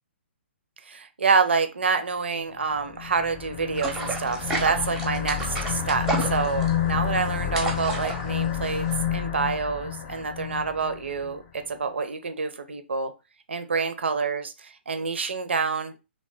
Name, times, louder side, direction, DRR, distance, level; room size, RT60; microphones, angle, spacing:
voice 1, 0.9-8.8 9.1-13.1 13.5-14.4 14.9-15.9, right 5 dB, 65° right, 9 dB, 0.6 m, -27 dB
sound 1, 2.7-11.3, left 9 dB, 30° left, 0.7 m, -30 dB
sound 2, 3.8-9.0, right 3 dB, 10° right, 0.7 m, -31 dB
2.8 x 2.7 x 3.3 m, 0.28 s
figure-of-eight pair, 125°, 7 cm